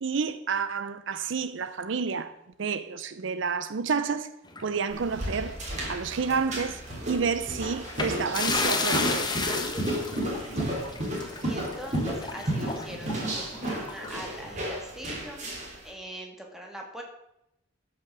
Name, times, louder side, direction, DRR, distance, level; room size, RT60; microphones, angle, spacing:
voice 1, 0.0-2.3 2.6-4.3 4.6-5.6 5.9-6.8 7.1-9.4, right 5 dB, 70° right, 0.6 m, -29 dB
sound 1, 4.5-6.1 6.4-6.6 7.8-14.3, left 3 dB, 20° left, 1.2 m, -33 dB
sound 2, 4.9-15.8, right 1 dB, 35° right, 3.3 m, -33 dB
voice 2, 11.4-17.0, equal, ahead, 2.0 m, -42 dB
12.5 x 6.1 x 6.1 m
head